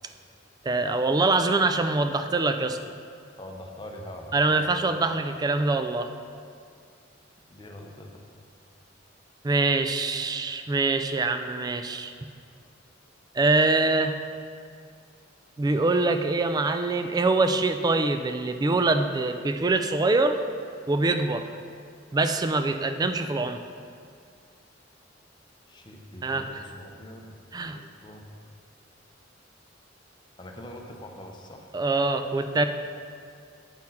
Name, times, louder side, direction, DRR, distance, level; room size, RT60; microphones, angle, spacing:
voice 1, 0.7-2.8 4.3-6.1 9.4-12.1 13.3-14.1 15.6-20.4 20.9-21.5 22.1-23.6 26.2-26.5 27.5-27.8 31.7-32.7, right 3 dB, 20° right, 8 dB, 0.3 m, -24 dB
voice 2, 3.4-4.7 7.5-8.1 25.7-27.3 27.7-28.2 30.4-31.7, left 1 dB, 25° left, 1 dB, 0.7 m, -43 dB
9.6 x 4.2 x 4.2 m, 2.3 s
head